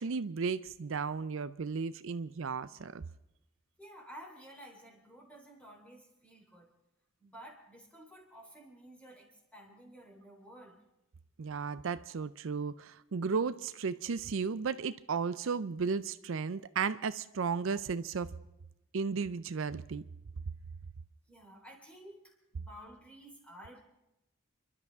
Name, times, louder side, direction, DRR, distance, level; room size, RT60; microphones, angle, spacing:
voice 1, 0.0-3.0 11.4-18.3 18.9-20.0, right 5 dB, 70° right, 14 dB, 0.5 m, -34 dB
voice 2, 3.8-6.7 7.2-10.8 21.3-23.8, equal, 5° left, -1 dB, 3.8 m, -53 dB
29.5 x 12.0 x 3.6 m, 0.93 s
head